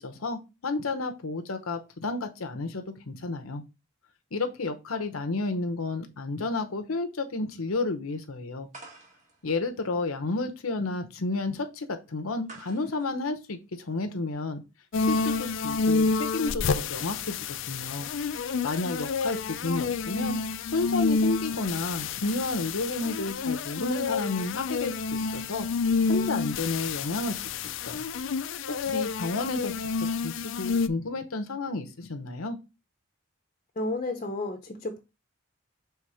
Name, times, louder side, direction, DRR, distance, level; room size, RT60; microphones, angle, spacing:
voice 1, 0.0-3.6 4.3-8.7 9.4-14.6 15.0-17.3 17.7-18.1 18.6-20.4 20.7-25.7 26.1-27.4 27.6-28.1 28.7-32.6, left 3 dB, 90° left, 0.8 m, -31 dB
sound 1, 8.7-14.3, right 2 dB, 35° right, 1.6 m, -52 dB
sound 2, 14.9-30.9, left 4 dB, 60° left, 0.4 m, -29 dB
voice 2, 33.8-35.0, left 2 dB, 35° left, 0.7 m, -32 dB
5.7 x 3.6 x 4.9 m
head